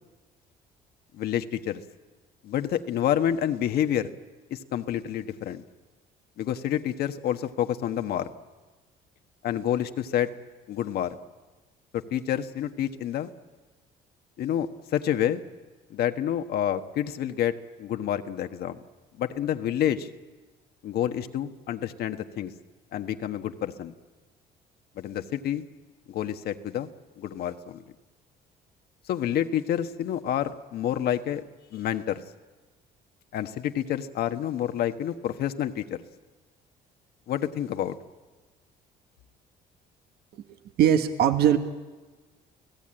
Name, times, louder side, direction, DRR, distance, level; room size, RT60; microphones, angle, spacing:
voice 1, 1.1-1.8 2.4-4.1 4.5-5.6 6.4-8.3 9.4-10.3 10.7-11.2 11.9-13.3 14.4-15.4 15.9-18.8 19.2-20.1 20.8-22.5 22.9-23.9 25.0-25.6 26.1-26.9 27.2-27.8 29.1-31.4 31.7-32.2 33.3-36.0 37.3-38.0, left 10 dB, 70° left, 7 dB, 1.3 m, -28 dB
voice 2, 40.8-41.6, right 10 dB, 70° right, 7 dB, 1.5 m, -20 dB
29.5 x 17.5 x 8.9 m, 1.3 s
cardioid pair, 110°, 17 cm